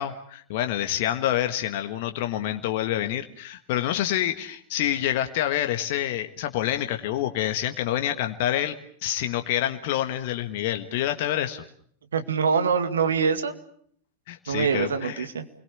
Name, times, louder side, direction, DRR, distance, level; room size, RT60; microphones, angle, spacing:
voice 1, 0.0-11.6 14.3-15.3, left 12 dB, 55° left, 7 dB, 1.5 m, -27 dB
voice 2, 12.1-13.5 14.5-15.4, right 6 dB, 75° right, 9 dB, 2.1 m, -24 dB
29.5 x 21.5 x 7.1 m, 0.62 s
figure-of-eight pair, 90°, 0 cm